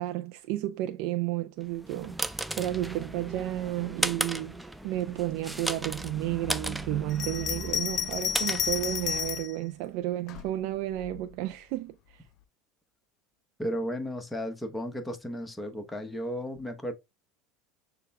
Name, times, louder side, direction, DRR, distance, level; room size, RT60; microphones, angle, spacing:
voice 1, 0.0-4.6 4.8-12.2, right 14 dB, 65° right, 0.4 m, -32 dB
sound 1, 1.7-9.4, right 1 dB, 5° right, 0.5 m, -36 dB
Bell, 7.1-9.6 10.3-11.2, left 9 dB, 50° left, 0.4 m, -31 dB
voice 2, 13.6-16.9, equal, 10° left, 1.1 m, -34 dB
6.6 x 2.2 x 3.4 m
hypercardioid pair, 90°, 0 cm